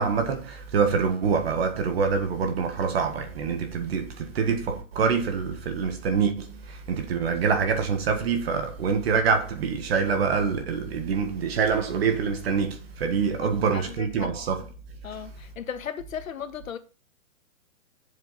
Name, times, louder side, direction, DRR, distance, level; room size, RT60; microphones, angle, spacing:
voice 1, 0.0-14.7, right 5 dB, 45° right, 1.6 m, -25 dB
voice 2, 13.4-14.3 15.0-16.8, left 8 dB, 70° left, 1.7 m, -37 dB
7.5 x 7.3 x 4.2 m
hypercardioid pair, 160°, 42 cm